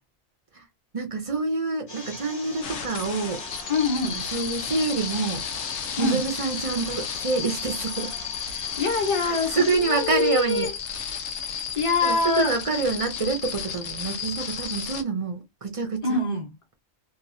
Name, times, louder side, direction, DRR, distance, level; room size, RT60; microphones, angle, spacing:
voice 1, 0.9-3.7 4.1-5.4 6.0-8.1 9.2-10.7 12.0-16.2, right 4 dB, 40° right, 0.5 m, -27 dB
sound 1, 1.9-9.8, left 2 dB, 50° left, 1.1 m, -40 dB
sound 2, 2.6-15.0, left 7 dB, 90° left, 0.9 m, -33 dB
voice 2, 3.7-4.2 6.0-6.2 8.5-10.7 11.7-12.6 16.0-16.5, left 3 dB, 30° left, 1.0 m, -25 dB
2.9 x 2.3 x 2.6 m
omnidirectional pair, 1.2 m